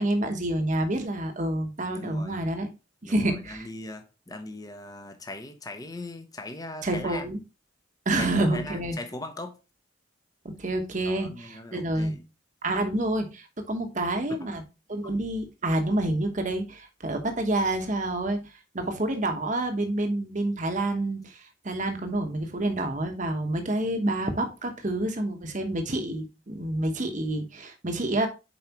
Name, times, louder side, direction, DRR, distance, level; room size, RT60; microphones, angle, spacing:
voice 1, 0.0-2.7 3.0-3.7 6.8-7.4 8.0-9.0 10.4-12.2 12.6-14.6 14.9-18.4 18.7-28.3, right 1 dB, 40° right, 1.1 m, -28 dB
voice 2, 1.9-2.5 3.0-7.2 8.2-9.6 11.0-12.2 14.4-14.5 18.8-19.0, left 2 dB, 20° left, 0.8 m, -39 dB
7.1 x 4.8 x 2.9 m
head